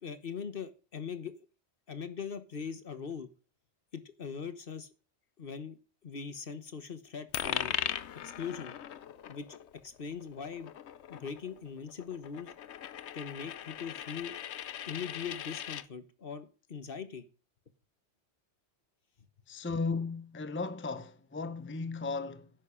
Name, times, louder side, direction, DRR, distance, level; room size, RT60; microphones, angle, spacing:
voice 1, 0.0-1.3 1.9-3.3 3.9-4.9 5.4-5.8 6.0-7.8 8.4-8.7 9.3-9.5 9.8-10.7 11.1-12.5 13.1-14.3 14.9-17.2, left 6 dB, 55° left, 1.4 m, -41 dB
Coin (dropping), 7.3-15.9, left 10 dB, 80° left, 1.0 m, -39 dB
voice 2, 19.5-22.5, left 4 dB, 15° left, 0.7 m, -35 dB
11.0 x 9.2 x 5.0 m
omnidirectional pair, 1.1 m